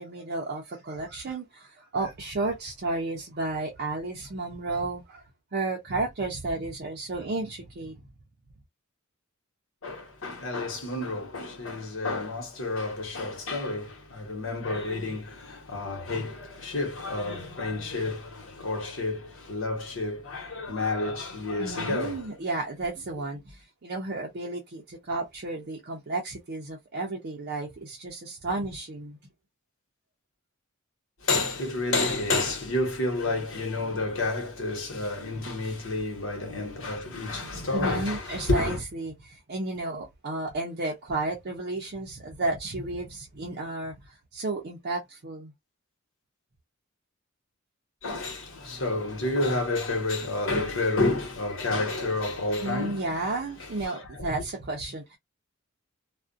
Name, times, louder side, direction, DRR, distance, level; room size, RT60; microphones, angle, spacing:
voice 1, 0.0-5.2 5.5-8.0 21.6-29.2 37.7-45.5 52.6-55.2, right 2 dB, 50° right, 0.5 m, -32 dB
voice 2, 9.8-22.4 31.2-38.8 48.0-53.1 53.6-54.3, left 2 dB, 70° left, 1.1 m, -30 dB
2.4 x 2.1 x 2.5 m
head